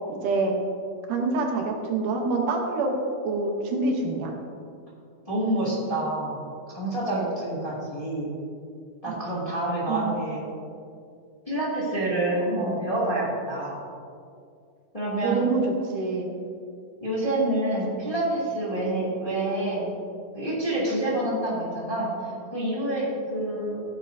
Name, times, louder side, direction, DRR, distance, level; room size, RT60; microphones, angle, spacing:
voice 1, 0.1-0.6 1.1-3.0 3.2-4.3 9.1-9.2 9.9-10.1 15.2-16.4, right 3 dB, 80° right, 2 dB, 2.7 m, -26 dB
voice 2, 5.3-6.4 6.7-8.4 9.0-10.4 11.5-13.8 14.9-15.4 17.0-19.9 20.3-22.1 22.5-23.8, right 1 dB, 15° left, -7 dB, 2.0 m, -27 dB
15.0 x 9.1 x 2.7 m, 2.4 s
omnidirectional pair, 3.6 m